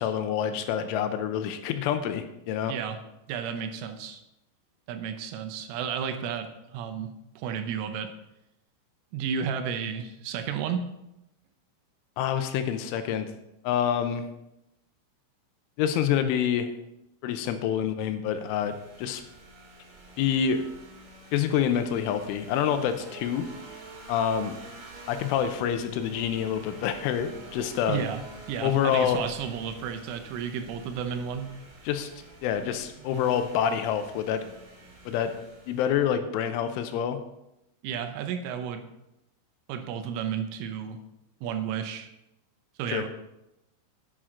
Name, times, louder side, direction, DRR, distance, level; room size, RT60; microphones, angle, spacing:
voice 1, 0.0-2.7 12.2-13.3 13.6-14.3 15.8-16.7 17.2-19.2 20.2-20.6 21.3-23.5 24.1-24.6 25.1-28.0 28.6-29.2 31.8-32.1 32.4-34.4 35.1-35.3 35.7-37.2 42.9-43.0, left 9 dB, 80° left, 8 dB, 3.1 m, -27 dB
voice 2, 3.3-4.2 4.9-8.1 9.1-10.9 27.9-28.2 28.5-31.5 37.8-38.9 39.7-41.0 41.4-42.1 42.8-43.1, right 7 dB, 80° right, 7 dB, 3.3 m, -32 dB
sound 1, 18.3-36.2, right 1 dB, 50° right, 3.6 m, -48 dB
10.5 x 9.2 x 3.8 m, 0.88 s
omnidirectional pair, 5.8 m